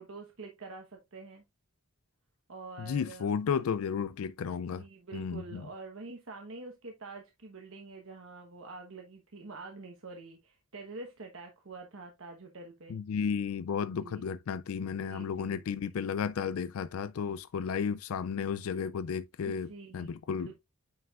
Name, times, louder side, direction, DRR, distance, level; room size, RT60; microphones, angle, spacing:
voice 1, 0.0-1.4 2.5-3.3 4.7-13.0 14.0-14.3 15.0-15.6 19.4-20.2 20.4-20.6, right 3 dB, 70° right, 1.1 m, -46 dB
voice 2, 2.8-4.8 5.1-5.7 12.9-19.7 19.9-20.5, left 6 dB, 85° left, 0.4 m, -33 dB
9.4 x 4.6 x 2.4 m
head